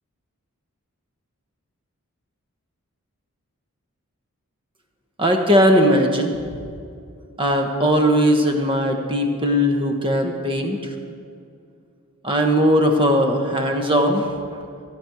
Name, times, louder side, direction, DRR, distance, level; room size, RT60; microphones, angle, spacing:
voice 1, 5.2-6.3 7.4-10.9 12.2-14.6, equal, 25° right, 3 dB, 1.2 m, -19 dB
14.5 x 5.3 x 9.2 m, 2.4 s
head